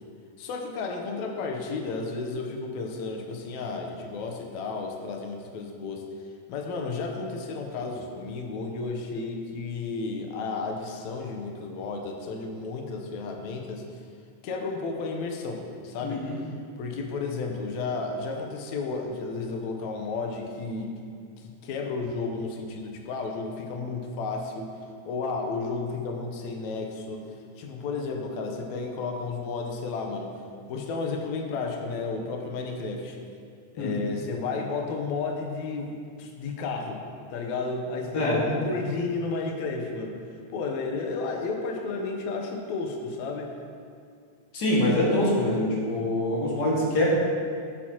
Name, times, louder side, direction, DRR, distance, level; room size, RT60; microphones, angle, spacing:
voice 1, 0.4-6.1 6.5-13.8 14.4-16.2 16.8-20.9 21.4-24.7 25.1-27.2 27.6-30.4 30.7-33.2 33.7-37.0 37.3-40.2 40.5-43.5, left 4 dB, 75° left, 2 dB, 2.2 m, -32 dB
voice 2, 16.0-16.4 33.8-34.0 38.1-38.6 44.5-47.1, left 1 dB, 35° left, -5 dB, 2.2 m, -25 dB
11.5 x 9.4 x 2.9 m, 2.2 s
omnidirectional pair, 3.3 m